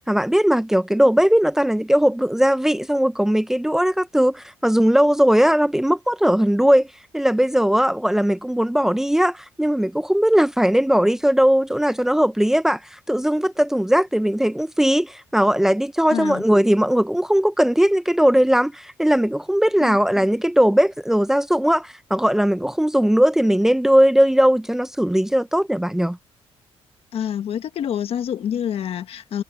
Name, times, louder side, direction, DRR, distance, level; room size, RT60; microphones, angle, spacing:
voice 1, 0.0-6.9 7.1-12.8 13.1-26.2, equal, 5° right, 0.8 m, -19 dB
voice 2, 16.1-16.4 19.8-20.0 27.1-29.4, left 9 dB, 60° left, 1.5 m, -27 dB
cardioid pair, 125°, 11 cm